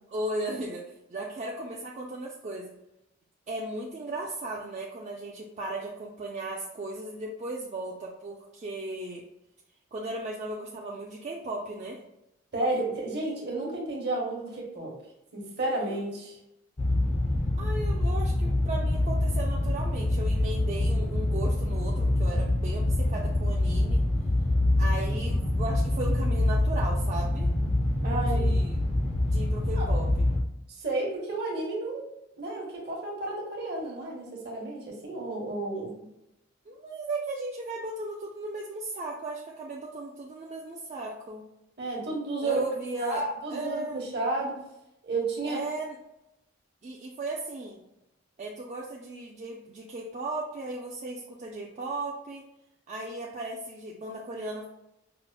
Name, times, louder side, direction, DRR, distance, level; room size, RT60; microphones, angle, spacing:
voice 1, 0.1-2.7 3.5-9.2 9.9-12.0 15.9-16.0 17.6-24.0 24.8-27.5 28.2-28.8 29.2-30.3 36.7-41.4 42.4-44.0 45.5-46.0 46.8-47.8 48.4-52.5 52.9-54.6, right 2 dB, 35° right, -2 dB, 0.3 m, -36 dB
voice 2, 12.5-14.9 15.3-16.4 28.0-28.6 29.7-29.9 30.7-32.0 32.4-36.1 41.8-42.6 43.0-44.6 45.0-45.6, right 2 dB, 55° right, -3 dB, 1.1 m, -32 dB
sound 1, 16.8-30.4, left 1 dB, 35° left, 0.5 m, -25 dB
5.5 x 2.0 x 2.2 m, 0.89 s
head